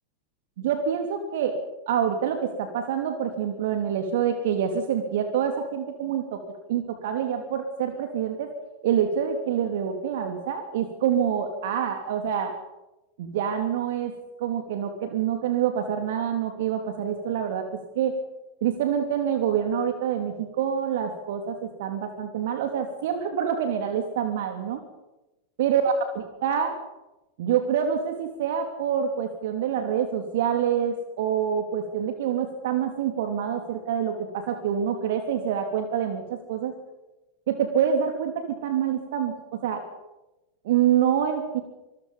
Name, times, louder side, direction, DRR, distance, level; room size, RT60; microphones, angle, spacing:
voice 1, 0.6-1.6 1.9-6.4 6.7-8.5 8.8-12.5 13.2-14.1 14.4-17.6 17.9-18.2 18.6-24.8 25.6-26.8 27.4-36.7 37.5-39.8 40.6-41.6, right 8 dB, 55° right, 6 dB, 3.0 m, -26 dB
27.0 x 21.5 x 5.5 m, 1.0 s
figure-of-eight pair, 90°, 0 cm